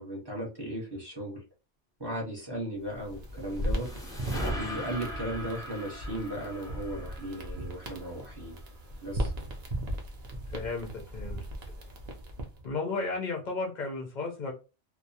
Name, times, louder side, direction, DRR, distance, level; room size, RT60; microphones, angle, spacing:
voice 1, 0.0-1.4 2.0-3.9 4.5-8.6 9.0-9.3, right 1 dB, 25° right, -3 dB, 0.8 m, -36 dB
sound 1, 2.8-12.6, equal, 50° right, 0.5 m, -37 dB
sound 2, 3.1-8.5, equal, 5° left, 0.5 m, -40 dB
voice 2, 10.5-11.4 12.6-14.5, left 3 dB, 55° left, 0 dB, 0.5 m, -34 dB
2.2 x 2.1 x 2.7 m, 0.31 s
omnidirectional pair, 1.3 m